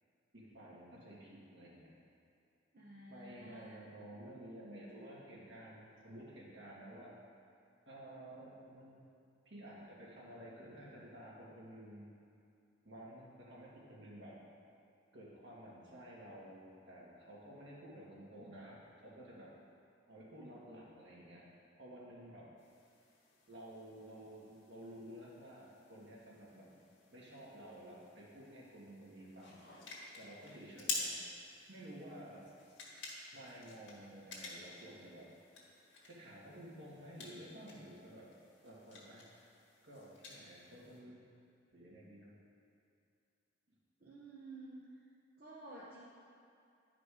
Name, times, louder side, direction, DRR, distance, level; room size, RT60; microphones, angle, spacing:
voice 1, 0.3-1.9 3.1-7.1 7.9-9.0 9.5-12.1 12.8-14.4 15.1-19.5 20.1-21.5 21.7-22.5 23.5-26.7 27.1-29.6 30.1-31.1 31.7-32.4 33.3-35.3 36.1-38.3 38.6-39.3 39.8-41.3 41.7-42.3, right 1 dB, 70° right, -6 dB, 2.1 m, -52 dB
voice 2, 2.7-3.8 44.0-44.8 45.4-46.0, right 2 dB, 50° right, -8 dB, 1.0 m, -52 dB
sound 1, 22.6-41.0, left 3 dB, 75° left, 1.7 m, -50 dB
11.5 x 5.0 x 4.9 m, 2.5 s
head